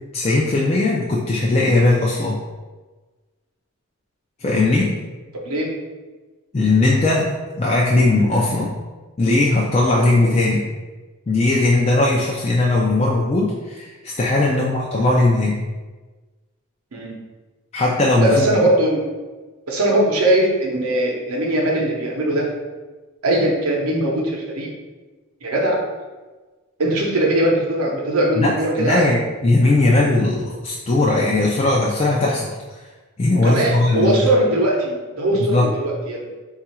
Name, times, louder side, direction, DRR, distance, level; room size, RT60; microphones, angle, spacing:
voice 1, 0.1-2.4 4.4-5.0 6.5-7.3 7.6-8.7 9.2-10.6 11.3-15.6 17.7-18.5 28.4-32.5 33.2-34.2 35.4-35.7, left 2 dB, 30° left, -4 dB, 0.4 m, -18 dB
voice 2, 5.3-5.7 14.5-14.6 16.9-17.2 18.2-19.1 19.7-22.5 23.2-24.7 25.4-25.8 26.8-29.1 33.3-36.2, right 1 dB, 80° right, -1 dB, 0.7 m, -20 dB
3.8 x 2.4 x 4.3 m, 1.3 s
head